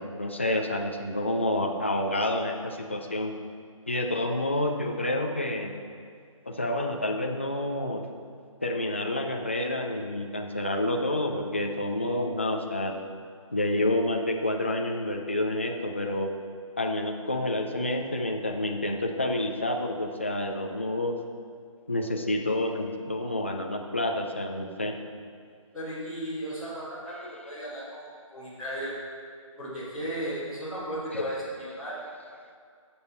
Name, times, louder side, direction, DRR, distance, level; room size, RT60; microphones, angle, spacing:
voice 1, 0.0-3.3 3.9-5.7 6.5-8.0 8.6-12.9 13.5-16.3 16.8-21.2 21.9-25.0 31.1-31.2, left 1 dB, 20° left, 2 dB, 0.4 m, -29 dB
voice 2, 25.7-29.0 29.6-32.0, right 1 dB, ahead, -16 dB, 1.8 m, -35 dB
14.5 x 7.0 x 4.2 m, 2.2 s
hypercardioid pair, 175°, 17 cm